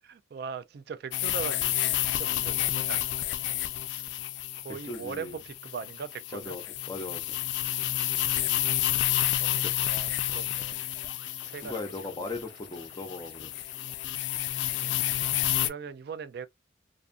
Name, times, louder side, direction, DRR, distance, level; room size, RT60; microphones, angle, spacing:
voice 1, 0.0-3.2 3.9-4.1 4.6-6.6 9.4-10.8 11.4-11.8 12.1-12.4 14.8-15.2 15.6-16.5, right 6 dB, 55° right, 0.3 m, -40 dB
sound 1, 1.1-15.7, left 13 dB, 70° left, 0.3 m, -30 dB
voice 2, 4.8-5.4 6.3-7.4 9.6-9.7 11.6-13.5, left 3 dB, 20° left, 0.6 m, -38 dB
sound 2, 10.9-15.9, equal, 25° right, 0.9 m, -58 dB
2.5 x 2.4 x 2.4 m
head